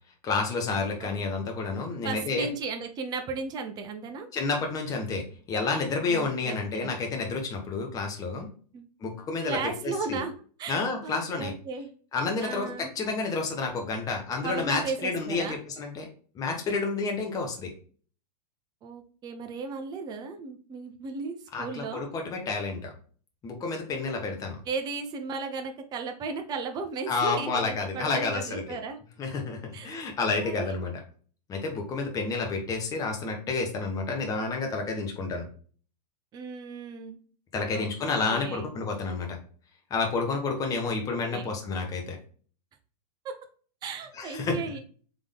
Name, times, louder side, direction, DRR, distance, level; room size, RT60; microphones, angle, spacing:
voice 1, 0.2-2.5 4.3-8.5 9.0-10.2 10.7-11.5 12.1-16.1 16.3-17.7 21.5-22.9 23.4-24.6 27.1-28.6 29.2-31.0 31.5-35.5 37.5-39.4 39.9-42.2 44.1-44.6, left 4 dB, 15° left, 2 dB, 1.0 m, -30 dB
voice 2, 2.0-4.3 6.1-6.9 8.7-8.9 9.4-10.3 10.6-11.9 12.4-12.9 14.4-15.6 18.8-22.0 24.7-29.0 29.7-30.0 30.3-30.7 36.3-37.2 37.7-37.9 38.2-38.7 40.7-40.9 41.3-41.5 43.2-43.3 43.8-44.8, right 4 dB, 20° right, 5 dB, 0.6 m, -35 dB
3.7 x 3.6 x 3.4 m, 0.43 s
hypercardioid pair, 140°, 21 cm